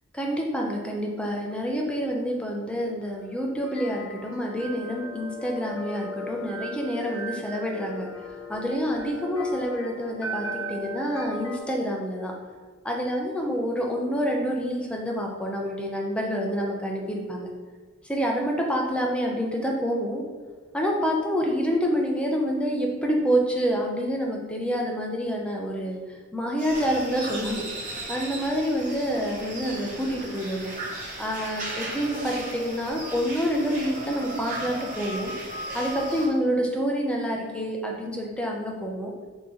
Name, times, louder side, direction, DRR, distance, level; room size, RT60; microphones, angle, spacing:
voice 1, 0.1-12.3 12.8-17.5 18.0-20.2 20.7-30.7 31.2-35.3 35.7-39.1, equal, 5° left, -1 dB, 0.5 m, -27 dB
sound 1, 3.0-11.6, left 1 dB, 80° left, 0.8 m, -37 dB
sound 2, 26.6-36.3, right 1 dB, 40° right, 1.1 m, -36 dB
3.9 x 2.9 x 3.7 m, 1.5 s
head